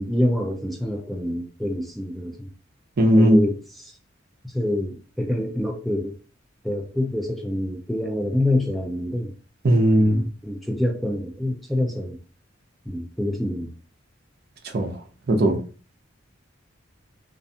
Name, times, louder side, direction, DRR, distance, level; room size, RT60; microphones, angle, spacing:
voice 1, 0.0-2.5 3.1-3.9 4.5-6.2 6.6-9.3 10.0-12.2 12.9-13.7, left 1 dB, ahead, 0.4 m, -26 dB
voice 2, 3.0-3.4 9.6-10.2 14.7-14.9 15.3-15.6, equal, 55° right, 0.5 m, -17 dB
2.5 x 2.2 x 2.6 m
head